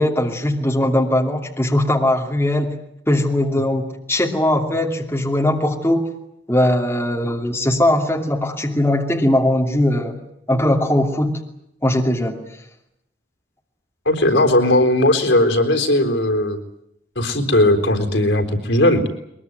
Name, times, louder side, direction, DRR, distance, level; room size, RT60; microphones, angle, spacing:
voice 1, 0.0-2.8 3.1-6.1 6.5-10.2 10.5-11.4 11.8-12.4, left 1 dB, 15° left, 1 dB, 2.8 m, -19 dB
voice 2, 14.1-16.6 17.2-19.1, left 1 dB, 80° left, 5 dB, 4.0 m, -17 dB
22.0 x 22.0 x 9.4 m, 0.78 s
head